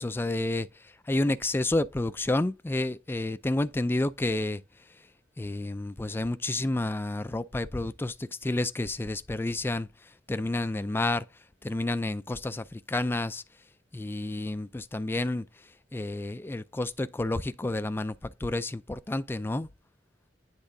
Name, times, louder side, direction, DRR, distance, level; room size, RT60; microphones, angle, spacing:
voice 1, 0.0-4.6 5.4-9.9 10.3-11.2 11.6-13.4 13.9-15.5 15.9-19.7, left 2 dB, 10° left, 0.3 m, -30 dB
10.0 x 3.6 x 2.6 m
head